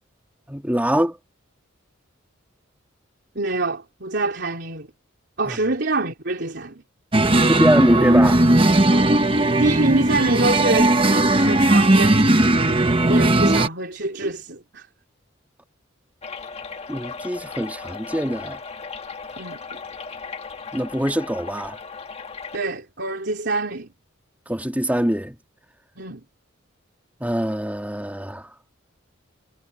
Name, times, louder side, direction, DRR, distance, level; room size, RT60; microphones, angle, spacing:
voice 1, 0.5-1.2 5.4-5.6 7.5-8.4 16.9-18.6 20.7-21.8 24.5-25.4 27.2-28.5, equal, 10° right, 3.2 m, -23 dB
voice 2, 3.4-4.9 5.4-6.8 7.3-7.5 8.9-9.2 9.6-12.3 13.0-14.9 19.4-19.6 22.5-23.9 26.0-26.2, right 2 dB, 55° right, 3.6 m, -25 dB
sound 1, 7.1-13.7, right 1 dB, 25° right, 1.1 m, -17 dB
sound 2, 16.2-22.6, left 5 dB, 30° left, 1.7 m, -36 dB
head